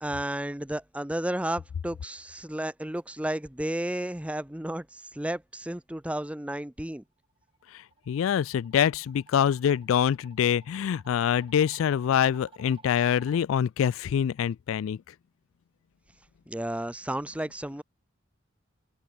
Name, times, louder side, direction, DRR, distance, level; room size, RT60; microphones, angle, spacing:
voice 1, 0.0-4.8 5.1-7.0 16.5-17.8, right 1 dB, 5° right, 0.6 m, -32 dB
sound 1, 7.2-13.4, right 4 dB, 25° right, 2.2 m, -55 dB
voice 2, 8.1-15.0, left 8 dB, 80° left, 0.3 m, -25 dB
head